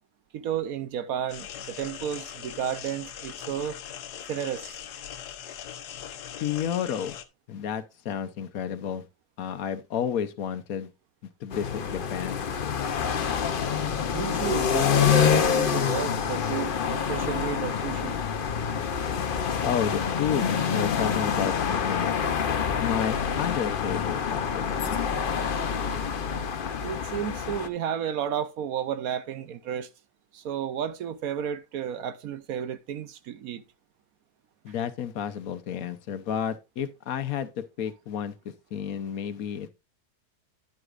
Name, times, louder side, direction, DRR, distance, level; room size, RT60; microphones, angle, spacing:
voice 1, 0.3-3.8 4.3-4.8 14.1-18.2 26.8-29.9 30.3-33.6, right 9 dB, 70° right, 1.1 m, -32 dB
sound 1, 1.3-7.3, left 9 dB, 90° left, 1.3 m, -41 dB
voice 2, 6.4-7.2 7.5-9.0 9.4-10.9 11.4-12.4 19.6-22.1 22.8-25.0 34.6-39.7, left 8 dB, 70° left, 1.2 m, -31 dB
sound 2, 11.5-27.7, left 7 dB, 50° left, 0.7 m, -27 dB
10.5 x 7.9 x 2.5 m
omnidirectional pair, 1.7 m